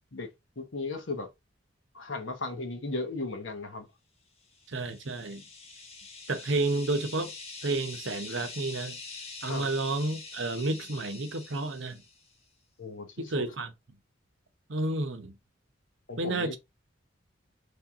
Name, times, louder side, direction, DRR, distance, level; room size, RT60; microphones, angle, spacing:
voice 1, 0.6-1.3 1.9-3.9 9.4-9.7 12.8-13.4 16.1-16.6, left 3 dB, 70° left, 1.0 m, -36 dB
sound 1, 4.5-12.3, left 3 dB, 30° left, 1.2 m, -45 dB
voice 2, 4.7-5.4 6.3-7.3 7.6-9.0 9.4-12.0 13.2-13.7 14.7-15.4 16.2-16.6, right 2 dB, 65° right, 0.8 m, -31 dB
4.4 x 3.4 x 3.5 m
head